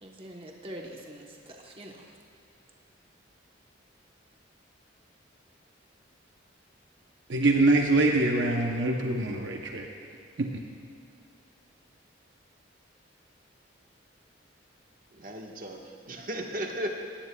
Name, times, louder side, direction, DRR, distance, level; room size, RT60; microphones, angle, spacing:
voice 1, 0.0-2.1, right 1 dB, 30° right, 0 dB, 1.1 m, -44 dB
voice 2, 7.3-9.9 10.4-10.6, right 2 dB, 65° right, 1 dB, 0.9 m, -24 dB
voice 3, 15.1-16.9, equal, 45° right, 1 dB, 1.3 m, -36 dB
18.0 x 17.5 x 2.3 m, 2.6 s
head